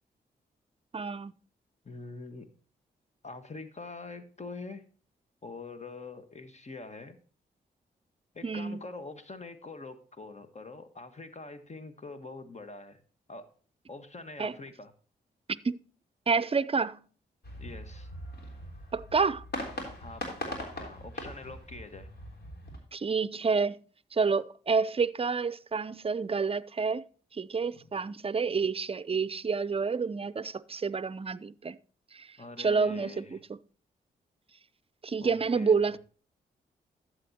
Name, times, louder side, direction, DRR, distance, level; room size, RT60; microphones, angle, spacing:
voice 1, 0.9-1.3 8.4-8.8 14.4-14.5 15.6-15.8 16.3-17.0 18.9-19.4 22.9-23.8 24.1-27.0 27.3-31.8 32.1-32.3 32.6-33.6 35.0-36.0, right 5 dB, 30° right, 0.6 m, -29 dB
voice 2, 1.8-2.5 3.2-4.8 5.4-7.2 8.3-13.0 13.3-13.5 13.9-14.9 17.6-18.1 20.0-22.1 27.7-27.9 32.4-33.4 35.2-36.0, left 3 dB, 40° left, 1.5 m, -44 dB
sound 1, 17.4-22.8, left 1 dB, 60° left, 3.5 m, -40 dB
12.5 x 7.9 x 2.8 m
supercardioid pair, 45°, 19 cm